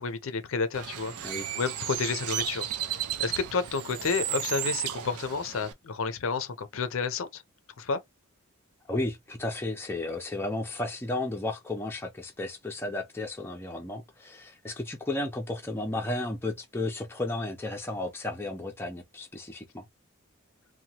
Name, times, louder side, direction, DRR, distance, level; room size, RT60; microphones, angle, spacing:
voice 1, 0.0-1.1 1.5-7.4 7.8-8.0, left 5 dB, 65° left, 0.5 m, -31 dB
Bird, 0.7-5.7, right 11 dB, 90° right, 0.5 m, -34 dB
voice 2, 1.1-1.5 8.9-19.8, left 2 dB, 10° left, 0.4 m, -33 dB
2.8 x 2.2 x 2.8 m
head